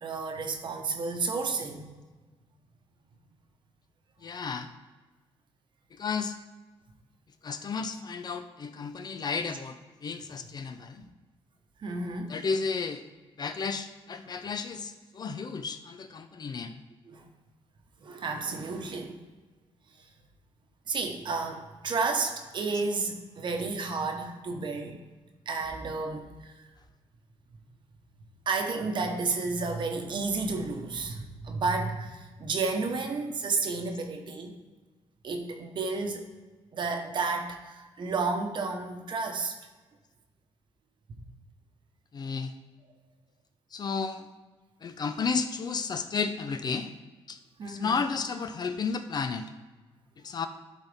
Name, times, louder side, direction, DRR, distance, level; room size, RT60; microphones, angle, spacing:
voice 1, 0.0-1.8 10.2-10.3 11.8-12.4 17.1-17.3 18.0-19.2 20.9-25.0 25.5-26.2 28.5-34.6 35.2-36.3 36.7-39.5 47.6-48.0, right 4 dB, 45° right, 4 dB, 1.0 m, -31 dB
voice 2, 4.2-4.7 6.0-6.4 7.4-11.0 12.3-13.0 13.4-16.8 42.1-42.5 43.7-44.3 44.8-46.9 47.3-49.5 50.2-50.5, left 5 dB, 40° left, 9 dB, 0.5 m, -33 dB
11.5 x 4.1 x 3.5 m, 1.3 s
cardioid pair, 120°, 11 cm